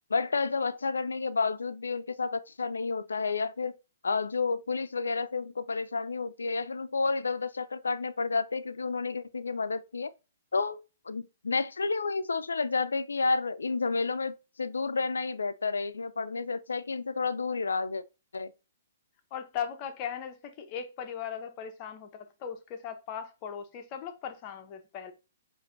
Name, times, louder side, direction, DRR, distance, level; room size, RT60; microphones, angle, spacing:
voice 1, 0.1-3.8 4.0-10.1 10.5-10.8 11.1-18.0 18.3-18.5, left 4 dB, 90° left, 0.3 m, -30 dB
voice 2, 19.3-25.1, left 8 dB, 35° left, 0.5 m, -38 dB
5.7 x 2.5 x 2.5 m
hypercardioid pair, 135°, 0 cm